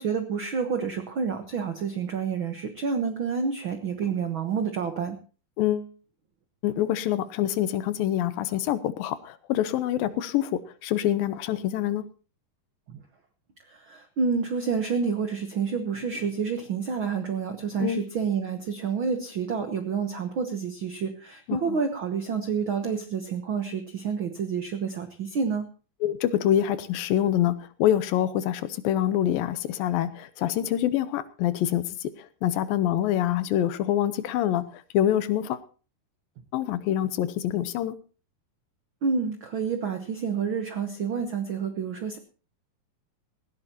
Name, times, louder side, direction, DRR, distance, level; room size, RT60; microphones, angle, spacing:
voice 1, 0.0-5.2 12.9-13.0 13.7-25.7 39.0-42.2, right 6 dB, 80° right, 7 dB, 1.1 m, -29 dB
voice 2, 5.6-5.9 6.6-12.1 17.8-18.0 21.5-21.8 26.0-35.6 36.5-38.0, left 11 dB, 80° left, 14 dB, 2.5 m, -26 dB
18.0 x 16.0 x 2.9 m, 0.37 s
omnidirectional pair, 4.1 m